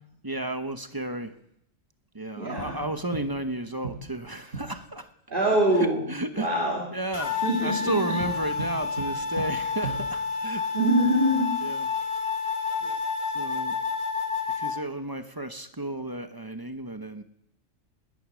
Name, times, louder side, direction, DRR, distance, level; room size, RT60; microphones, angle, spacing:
voice 1, 0.2-1.3 2.1-5.1 5.7-6.5 6.9-10.6 11.6-11.9 13.3-13.7 14.5-17.2, right 2 dB, 20° right, 8 dB, 0.8 m, -33 dB
voice 2, 2.4-2.8 5.3-6.1 6.3-6.8 7.4-8.1 10.7-11.5 12.8-12.9, right 1 dB, 40° right, -2 dB, 2.6 m, -24 dB
sound 1, 2.6-3.5 3.8-4.9 8.2-10.4, right 4 dB, 75° right, 5.2 m, -38 dB
sound 2, 7.1-14.8, left 5 dB, 35° left, 2.0 m, -30 dB
19.5 x 10.0 x 6.3 m, 0.74 s
omnidirectional pair, 1.3 m